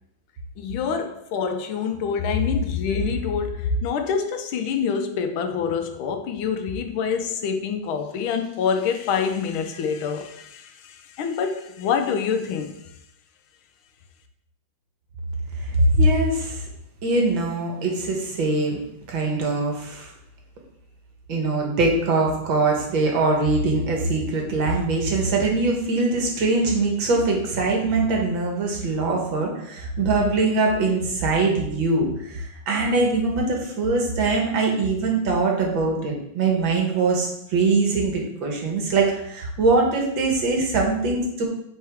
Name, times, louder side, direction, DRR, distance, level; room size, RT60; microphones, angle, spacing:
voice 1, 0.6-12.8, left 6 dB, 90° left, 1.6 m, -26 dB
voice 2, 15.8-16.6 17.0-18.8 19.1-20.1 21.3-41.5, right 3 dB, 75° right, 2.0 m, -22 dB
7.7 x 4.5 x 3.5 m
omnidirectional pair, 2.2 m